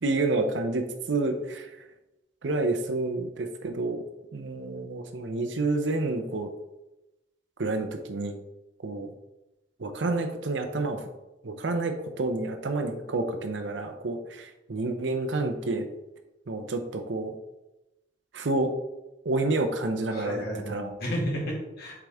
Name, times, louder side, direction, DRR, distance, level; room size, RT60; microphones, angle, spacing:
voice 1, 0.0-1.7 2.4-4.0 4.3-6.5 7.6-8.4 8.8-9.1 9.8-11.1 11.4-15.9 16.5-17.3 18.3-18.7 19.2-20.9, right 2 dB, 80° right, 5 dB, 0.7 m, -29 dB
voice 2, 20.1-21.9, equal, 60° left, -3 dB, 2.4 m, -32 dB
7.7 x 4.8 x 3.5 m, 0.99 s
head